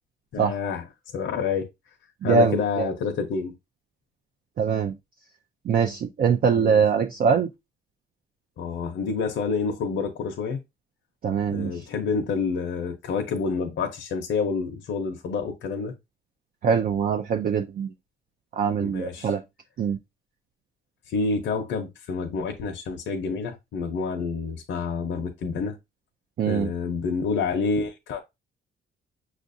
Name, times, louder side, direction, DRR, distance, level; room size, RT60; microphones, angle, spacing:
voice 1, 0.3-0.8 1.1-1.7 2.2-3.5 6.6-6.8 8.6-10.6 11.5-15.9 18.8-19.3 21.1-25.8 26.5-28.2, left 5 dB, 70° left, 0.7 m, -28 dB
voice 2, 2.2-2.9 4.6-4.9 5.7-7.5 11.2-11.8 16.6-17.9 18.5-19.4 19.8-20.0 26.4-26.7, right 6 dB, 45° right, 0.5 m, -23 dB
6.0 x 2.5 x 2.6 m
cardioid pair, 90°, 20 cm